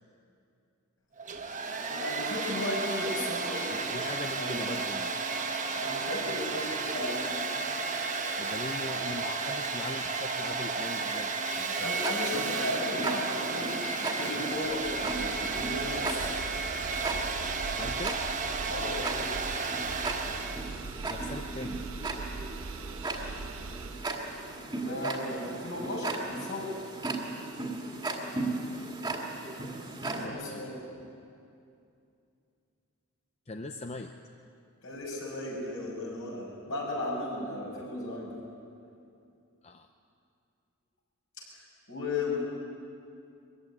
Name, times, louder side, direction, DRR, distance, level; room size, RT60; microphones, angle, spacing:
Domestic sounds home sounds, 1.2-20.7, right 4 dB, 35° right, 1.3 m, -33 dB
voice 1, 1.3-4.7 5.6-7.4 7.8-8.1 11.8-16.3 18.7-19.3 24.8-26.7 30.0-31.0 34.8-38.3 41.5-41.6 41.9-42.4, left 2 dB, 60° left, -3 dB, 6.4 m, -36 dB
voice 2, 3.7-5.1 8.4-11.9 17.8-18.2 21.1-21.8 28.7-28.9 30.1-30.6 33.5-34.1 39.6-39.9, left 2 dB, 30° left, 6 dB, 0.6 m, -40 dB
Tick-tock, 11.9-30.3, right 2 dB, 20° right, 1.9 m, -37 dB
sound 1, 14.6-24.2, right 4 dB, 60° right, 0.6 m, -42 dB
22.5 x 15.0 x 9.6 m, 2.5 s
head